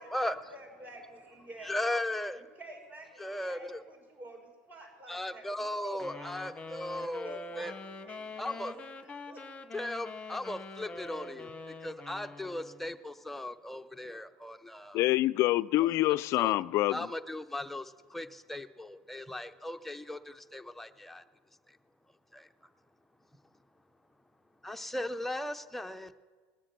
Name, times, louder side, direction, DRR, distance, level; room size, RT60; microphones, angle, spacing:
voice 1, 0.0-1.8 2.3-6.4 6.9-9.5, right 1 dB, 30° right, 4.3 m, -49 dB
voice 2, 1.6-2.4 3.2-3.8 5.1-7.7 8.4-8.7 9.7-15.0 16.4-16.6 16.9-21.2 22.3-22.5 24.6-26.1, left 1 dB, 5° left, 0.7 m, -37 dB
sound 1, 6.0-12.9, left 3 dB, 20° left, 1.1 m, -45 dB
voice 3, 14.9-17.1, left 17 dB, 50° left, 0.4 m, -26 dB
20.0 x 7.4 x 6.7 m
supercardioid pair, 110°, 6 cm